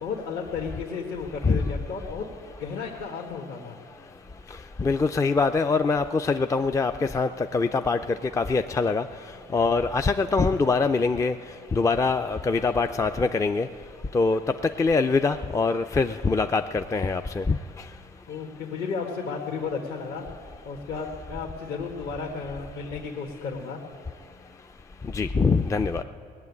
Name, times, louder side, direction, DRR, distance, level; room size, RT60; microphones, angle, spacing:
voice 1, 0.0-2.3 2.6-3.8 18.3-20.2 20.6-23.8, left 5 dB, 65° left, -1 dB, 1.4 m, -33 dB
voice 2, 4.8-8.0 8.4-9.0 9.5-11.3 11.7-13.7 14.1-14.4 14.8-17.6 25.1-26.0, left 4 dB, 20° left, 7 dB, 0.4 m, -23 dB
18.5 x 7.1 x 9.5 m, 2.3 s
cardioid pair, 110°, 17 cm